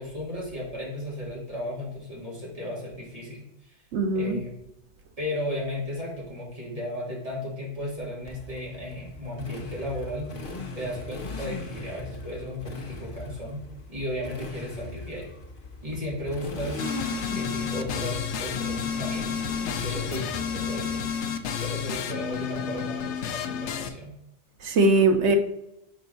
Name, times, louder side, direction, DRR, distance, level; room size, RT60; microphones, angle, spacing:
voice 1, 0.0-3.8 4.1-4.5 5.2-10.3 10.7-13.6 13.9-15.3 15.8-16.9 17.3-19.5 19.8-21.0 21.6-24.1, left 1 dB, 35° right, 2.7 m, -35 dB
voice 2, 3.9-4.4 24.6-25.4, right 2 dB, 85° right, 1.2 m, -21 dB
Motorcycle, 8.3-21.1, left 2 dB, 55° left, 1.2 m, -39 dB
sound 1, 16.8-23.9, left 7 dB, 90° left, 1.0 m, -31 dB
6.5 x 4.5 x 4.0 m
omnidirectional pair, 1.1 m